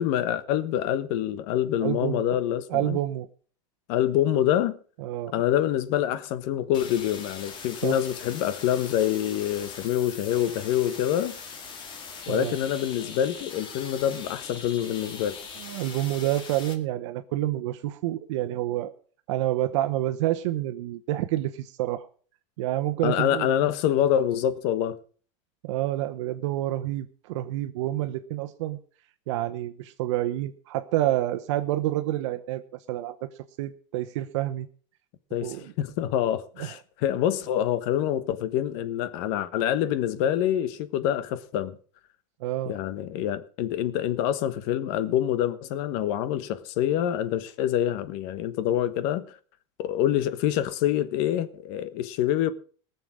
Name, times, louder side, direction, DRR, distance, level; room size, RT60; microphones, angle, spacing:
voice 1, 0.0-3.0 3.9-4.8 5.3-11.4 12.3-15.4 23.0-25.0 35.3-41.8 42.7-49.3 49.8-52.5, left 11 dB, 55° left, 1.2 m, -26 dB
voice 2, 1.8-2.3 2.7-3.3 5.0-5.3 7.8-8.0 12.3-12.5 15.6-18.9 19.3-22.1 22.6-23.6 25.6-28.8 29.3-33.3 33.6-34.7 35.4-35.7 36.6-36.7 42.4-42.8, right 14 dB, 75° right, 1.0 m, -28 dB
sound 1, 6.7-16.7, left 5 dB, 30° left, 2.0 m, -41 dB
19.0 x 7.0 x 6.2 m
supercardioid pair, 155°, 15 cm